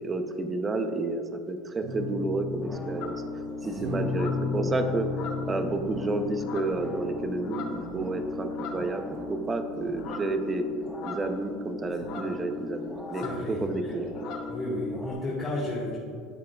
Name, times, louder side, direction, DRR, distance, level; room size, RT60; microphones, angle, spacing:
voice 1, 0.0-3.1 3.6-5.1 5.5-10.6 11.0-14.1, right 3 dB, 20° right, 7 dB, 0.7 m, -30 dB
sound 1, 1.8-3.0 3.7-8.4 9.2-9.3 9.5-10.6 11.2-11.8 12.7-12.8, left 4 dB, 75° right, 1.7 m, -36 dB
sound 2, 2.5-15.1, left 2 dB, ahead, 1.4 m, -37 dB
sound 3, 3.0-3.2 4.1-4.5 5.1-5.7 6.4-6.8 7.4-7.9 8.5-8.9 10.0-10.3 10.9-11.5 12.0-12.4 13.1-13.4 13.7-13.9 14.1-14.5, left 4 dB, 55° left, 1.0 m, -41 dB
voice 2, 13.1-13.9 14.5-16.0, left 1 dB, 30° left, -6 dB, 1.7 m, -33 dB
10.5 x 7.4 x 2.4 m, 2.5 s
supercardioid pair, 130°, 0 cm